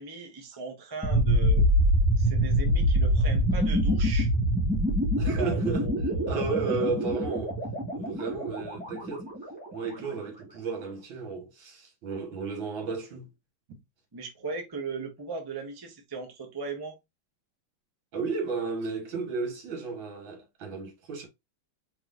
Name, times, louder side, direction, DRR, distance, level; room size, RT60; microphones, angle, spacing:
voice 1, 0.0-1.7 2.2-4.3 5.2-6.3 14.1-17.0, right 4 dB, 25° right, 0.5 m, -38 dB
sound 1, 1.0-9.9, equal, 5° left, 2.1 m, -25 dB
voice 2, 5.2-5.9 6.3-7.6 7.9-9.3 9.7-13.3 18.1-21.3, right 4 dB, 70° right, 2.0 m, -33 dB
4.8 x 3.6 x 2.4 m
omnidirectional pair, 2.3 m